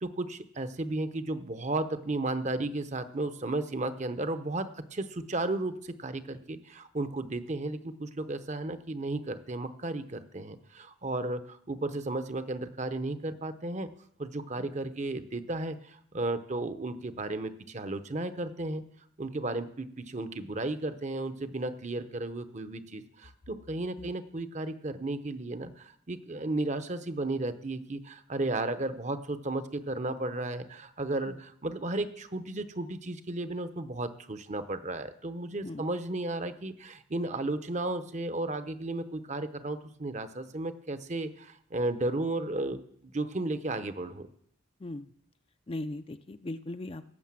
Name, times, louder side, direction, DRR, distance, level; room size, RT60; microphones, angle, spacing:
voice 1, 0.0-13.9 14.2-18.8 19.2-44.3, right 2 dB, 35° right, 11 dB, 0.7 m, -34 dB
voice 2, 44.8-45.1 45.7-47.1, left 2 dB, 25° left, 10 dB, 0.4 m, -39 dB
17.0 x 6.5 x 7.5 m, 0.66 s
head